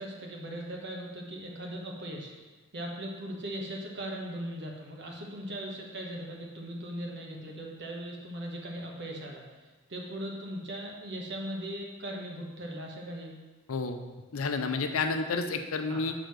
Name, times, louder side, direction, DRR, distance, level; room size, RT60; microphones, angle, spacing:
voice 1, 0.0-2.4 2.7-9.4 9.9-13.4 15.9-16.1, right 1 dB, 55° right, 0 dB, 1.3 m, -39 dB
voice 2, 13.7-14.0 14.3-16.1, left 4 dB, 70° left, 7 dB, 0.6 m, -30 dB
6.5 x 3.8 x 6.3 m, 1.2 s
head